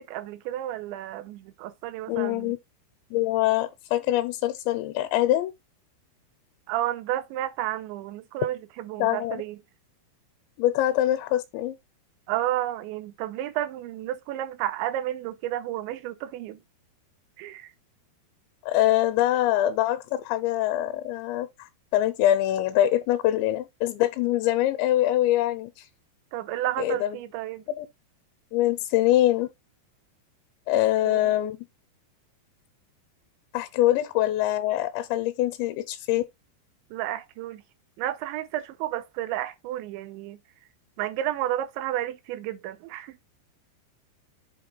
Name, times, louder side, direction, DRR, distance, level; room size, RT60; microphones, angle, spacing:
voice 1, 0.0-2.5 6.7-9.6 12.3-16.6 17.4-17.7 26.3-27.6 31.0-31.3 36.9-37.6 38.0-40.4 41.0-43.2, right 13 dB, 90° right, 3.0 m, -31 dB
voice 2, 2.1-2.6 3.1-5.5 9.0-9.4 10.6-11.8 18.7-25.9 26.8-27.2 27.8-27.9 28.5-29.5 30.7-31.7 33.5-36.2, left 13 dB, 90° left, 2.9 m, -24 dB
7.9 x 3.3 x 5.1 m
omnidirectional pair, 5.1 m